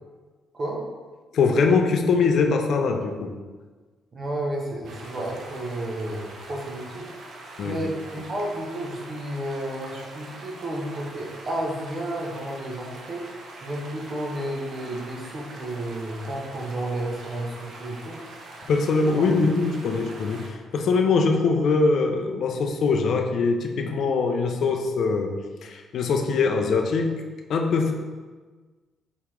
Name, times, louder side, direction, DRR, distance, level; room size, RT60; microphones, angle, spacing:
voice 1, 1.3-3.4 7.6-7.8 18.7-27.2 27.5-27.9, left 4 dB, 65° left, 4 dB, 0.5 m, -22 dB
voice 2, 4.1-18.2 19.2-19.3 19.7-19.8, right 1 dB, 45° right, -1 dB, 1.0 m, -32 dB
sound 1, 4.8-20.5, right 2 dB, 70° right, 0.8 m, -43 dB
4.5 x 3.0 x 3.6 m, 1.4 s
cardioid pair, 90°, 0 cm